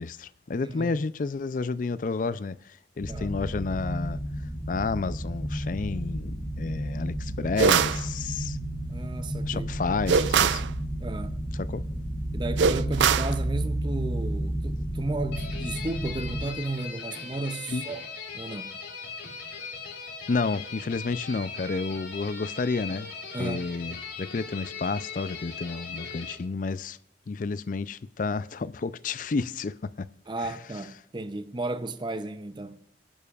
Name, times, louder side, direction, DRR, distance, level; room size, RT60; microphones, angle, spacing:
voice 1, 0.0-4.2 4.7-8.6 9.5-10.6 11.6-11.8 17.7-17.8 20.3-23.1 23.4-27.0 27.3-30.1, left 4 dB, 45° left, 0.4 m, -31 dB
voice 2, 0.6-1.0 3.1-3.4 8.9-9.7 11.0-11.4 12.3-18.1 18.3-18.7 23.3-23.7 30.3-33.0, right 2 dB, 25° right, 0.6 m, -34 dB
sound 1, 3.0-16.5, right 1 dB, 5° left, 1.1 m, -32 dB
sound 2, 7.6-8.0 10.1-10.7 12.6-13.3, right 6 dB, 85° right, 0.4 m, -22 dB
sound 3, 15.3-26.3, left 5 dB, 90° left, 2.9 m, -39 dB
23.5 x 11.0 x 2.4 m
head